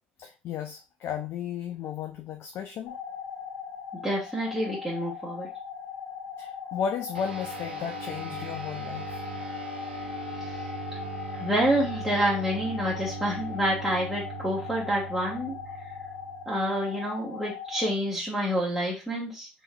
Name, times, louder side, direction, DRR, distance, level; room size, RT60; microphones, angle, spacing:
voice 1, 0.2-3.0 6.4-9.2, left 8 dB, 50° left, 5 dB, 0.4 m, -34 dB
sound 1, 2.9-17.9, left 7 dB, 70° left, 0.8 m, -39 dB
voice 2, 4.0-5.5 10.3-10.6 10.9-11.0 11.3-15.6 16.5-19.5, equal, ahead, -7 dB, 1.2 m, -28 dB
sound 2, 7.1-16.9, right 6 dB, 85° right, 0.6 m, -40 dB
3.6 x 3.0 x 2.2 m, 0.30 s
figure-of-eight pair, 60°, 5 cm